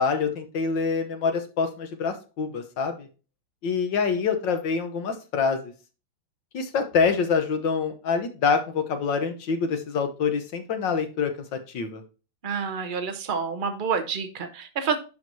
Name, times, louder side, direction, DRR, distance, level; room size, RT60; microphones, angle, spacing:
voice 1, 0.0-3.1 3.6-5.7 6.5-12.0, left 5 dB, 65° left, 7 dB, 1.5 m, -26 dB
voice 2, 12.4-15.0, right 6 dB, 50° right, 8 dB, 0.6 m, -28 dB
11.0 x 4.6 x 2.7 m, 0.33 s
omnidirectional pair, 2.3 m